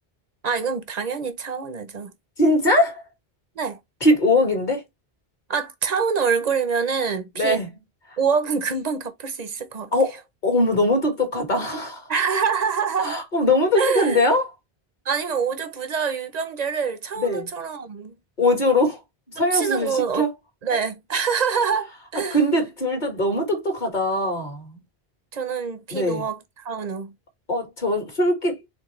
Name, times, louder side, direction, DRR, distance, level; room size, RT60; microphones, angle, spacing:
voice 1, 0.4-2.1 3.6-3.8 5.5-7.6 8.2-9.9 12.1-13.2 13.7-14.2 15.1-18.1 19.3-20.3 20.6-22.6 25.3-27.1, right 6 dB, 45° right, 0.7 m, -25 dB
voice 2, 2.4-3.0 4.0-4.8 7.4-7.7 9.9-12.1 13.0-14.4 17.2-17.5 18.4-19.0 19.3-20.3 22.3-24.8 25.9-26.2 27.5-28.6, left 1 dB, 50° left, 1.7 m, -21 dB
4.4 x 3.7 x 3.0 m
omnidirectional pair, 1.0 m